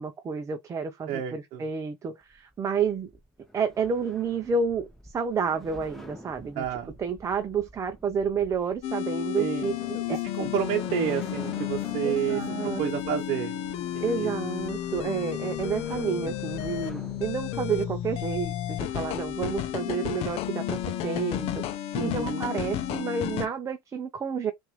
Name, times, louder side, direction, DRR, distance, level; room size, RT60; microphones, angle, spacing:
voice 1, 0.0-3.1 3.5-6.6 7.0-10.5 12.0-13.1 14.0-21.6 22.0-24.5, right 6 dB, 25° right, 0.6 m, -30 dB
voice 2, 1.1-1.6 6.6-6.9 9.4-9.8 10.1-13.5 13.9-14.3 21.9-22.5, right 9 dB, 55° right, 0.9 m, -30 dB
sound 1, 2.2-20.9, equal, ahead, 0.9 m, -48 dB
sound 2, 8.8-23.5, left 11 dB, 50° left, 0.6 m, -32 dB
5.7 x 2.6 x 3.0 m
supercardioid pair, 115°, 13 cm